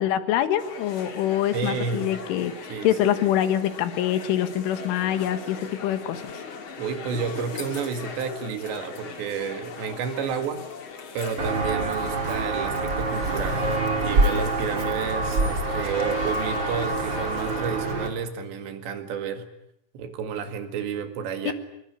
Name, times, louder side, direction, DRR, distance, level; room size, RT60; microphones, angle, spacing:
voice 1, 0.0-6.2 21.5-21.6, left 11 dB, 75° left, 11 dB, 4.0 m, -25 dB
sound 1, 0.6-17.6, left 5 dB, 45° left, 1.7 m, -39 dB
voice 2, 1.5-2.1 2.7-2.9 6.8-10.7 11.2-13.6 14.0-19.5 19.9-21.5, right 6 dB, 65° right, 9 dB, 4.0 m, -31 dB
Walk footsteps, 11.4-18.1, right 3 dB, 30° right, 2.9 m, -26 dB
24.5 x 22.0 x 9.9 m, 0.74 s
omnidirectional pair, 5.7 m